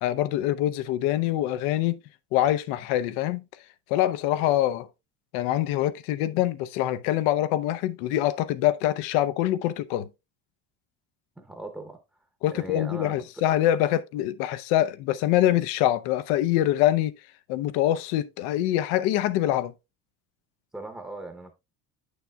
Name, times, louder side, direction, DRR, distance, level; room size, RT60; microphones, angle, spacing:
voice 1, 0.0-2.0 2.3-3.4 3.9-4.9 5.3-10.1 12.4-17.1 17.5-19.7, left 13 dB, 90° left, 0.7 m, -24 dB
voice 2, 11.4-12.0 12.5-13.2 20.7-21.5, right 2 dB, 5° right, 0.7 m, -38 dB
9.0 x 6.6 x 2.2 m
cardioid pair, 145°, 38 cm